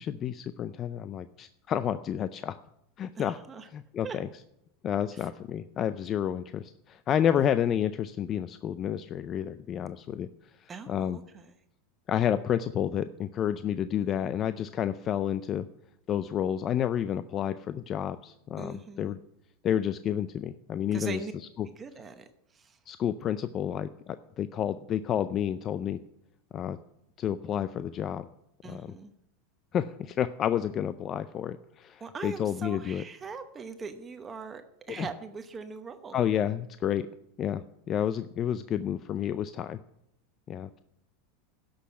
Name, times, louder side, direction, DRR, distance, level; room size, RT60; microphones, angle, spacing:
voice 1, 0.0-2.5 3.0-3.4 3.7-4.3 4.8-10.3 10.6-11.2 12.1-15.7 16.1-19.2 19.6-21.3 21.6-21.7 22.9-26.0 26.5-26.8 27.2-28.3 28.6-28.9 29.7-33.0 34.9-35.1 36.1-37.0 37.4-39.8 40.5-40.8, left 9 dB, 35° left, 12 dB, 0.4 m, -30 dB
voice 2, 3.2-3.7 4.0-4.2 10.7-11.4 18.6-19.1 20.9-21.3 21.8-22.2 22.5-22.7 28.6-29.1 32.0-34.6 34.9-36.2, right 5 dB, 20° right, 8 dB, 0.9 m, -41 dB
11.5 x 6.4 x 9.3 m, 0.79 s
supercardioid pair, 125°, 0 cm